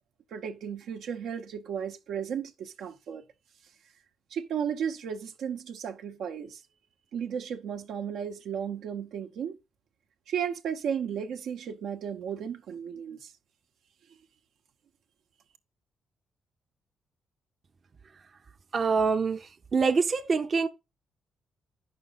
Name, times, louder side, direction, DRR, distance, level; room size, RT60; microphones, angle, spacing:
voice 1, 0.3-3.2 4.3-6.6 7.1-9.6 10.3-13.3, right 8 dB, 80° right, 0.9 m, -34 dB
voice 2, 18.7-20.7, right 5 dB, 40° right, 0.7 m, -25 dB
8.9 x 6.1 x 4.0 m
cardioid pair, 110°, 0 cm